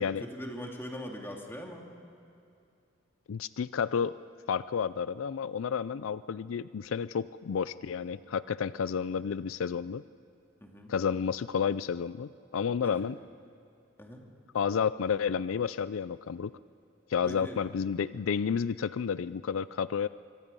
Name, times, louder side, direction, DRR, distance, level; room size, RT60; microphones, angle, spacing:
voice 1, 0.0-1.8 8.2-8.3 10.6-10.9 12.8-12.9 14.0-14.2 17.2-17.6, equal, 10° left, 0 dB, 2.5 m, -41 dB
voice 2, 3.3-4.1 4.5-10.0 10.9-13.2 14.5-16.5 17.1-20.1, left 6 dB, 80° left, 16 dB, 0.4 m, -31 dB
25.5 x 24.0 x 5.4 m, 2.6 s
head